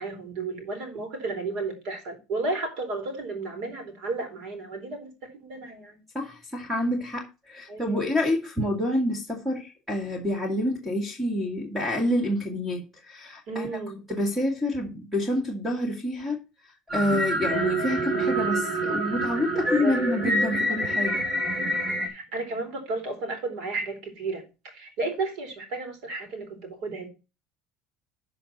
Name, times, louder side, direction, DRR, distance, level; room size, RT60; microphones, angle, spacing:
voice 1, 0.0-6.0 7.7-8.0 13.5-14.0 19.6-20.2 22.0-27.1, right 3 dB, 60° right, 4.0 m, -33 dB
voice 2, 6.1-13.7 14.1-16.4 16.9-21.2, left 1 dB, 5° right, 2.0 m, -28 dB
sound 1, 16.9-22.1, right 1 dB, 35° right, 3.1 m, -27 dB
12.0 x 5.3 x 4.1 m
cardioid pair, 140°, 0 cm